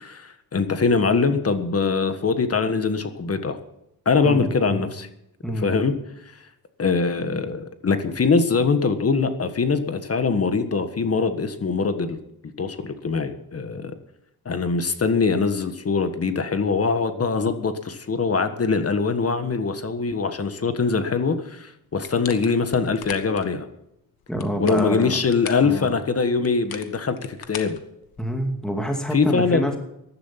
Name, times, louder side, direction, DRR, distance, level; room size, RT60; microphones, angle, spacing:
voice 1, 0.0-3.6 4.0-5.1 5.6-5.9 6.8-12.2 12.6-13.9 14.4-23.7 24.6-27.8 29.1-29.8, left 4 dB, 40° left, 9 dB, 1.6 m, -23 dB
voice 2, 4.2-4.8 5.4-5.8 24.3-25.2 25.6-25.9 28.2-29.8, equal, ahead, 3 dB, 2.4 m, -27 dB
sound 1, 22.0-23.5 24.2-25.7 26.4-28.5, left 8 dB, 80° left, 1.5 m, -39 dB
15.0 x 11.5 x 5.8 m, 0.81 s
cardioid pair, 105°, 36 cm